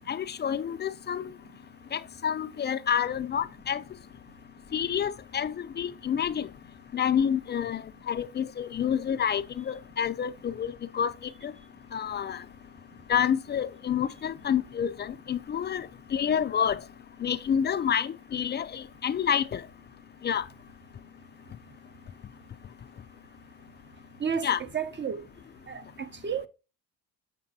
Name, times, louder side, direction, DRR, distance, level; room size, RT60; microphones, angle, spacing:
voice 1, 0.1-1.3 1.9-3.8 4.7-6.5 6.9-11.1 11.4-11.5 11.9-12.4 13.1-16.8 17.2-19.6 20.2-20.4 24.4-24.6, left 8 dB, 30° left, 0.3 m, -28 dB
voice 2, 24.7-25.2 25.7-26.5, right 7 dB, 30° right, 0.6 m, -31 dB
6.8 x 6.7 x 2.7 m
hypercardioid pair, 60°, 40 cm